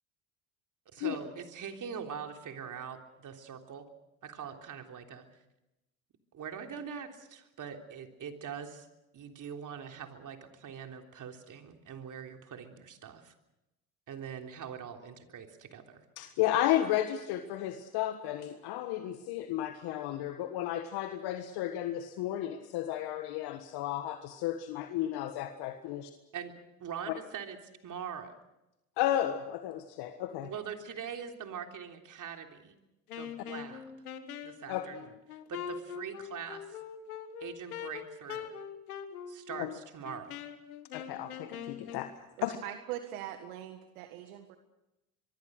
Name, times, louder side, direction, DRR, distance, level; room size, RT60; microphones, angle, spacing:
voice 1, 0.9-3.9 4.2-5.3 6.3-8.9 9.1-13.3 14.1-16.0 26.3-26.5 26.8-27.6 27.8-28.3 30.4-32.8 33.2-33.8 34.4-35.1 35.5-36.8 37.4-38.5 39.3-40.4, right 7 dB, 45° right, 4 dB, 3.5 m, -43 dB
voice 2, 16.2-26.1 29.0-30.5 34.7-34.9 39.6-39.7 40.9-42.1 42.4-42.6, left 12 dB, 60° left, 8 dB, 1.6 m, -33 dB
Wind instrument woodwind instrument, 33.1-42.1, left 8 dB, 85° left, 1.7 m, -43 dB
voice 3, 42.6-44.6, right 12 dB, 75° right, 7 dB, 1.8 m, -41 dB
24.0 x 23.5 x 6.5 m, 0.93 s
hypercardioid pair, 70°, 43 cm